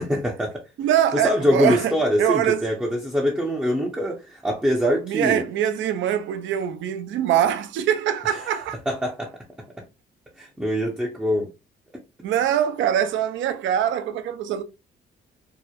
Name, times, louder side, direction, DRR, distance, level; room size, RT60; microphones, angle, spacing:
voice 1, 0.0-0.6 1.1-5.4 8.4-8.6 8.9-9.3 10.4-11.5, equal, 5° right, 0.5 m, -23 dB
voice 2, 0.8-1.9 2.2-2.6 5.1-8.8 12.2-14.6, right 10 dB, 70° right, 0.4 m, -23 dB
2.8 x 2.0 x 2.2 m
cardioid pair, 90°, 20 cm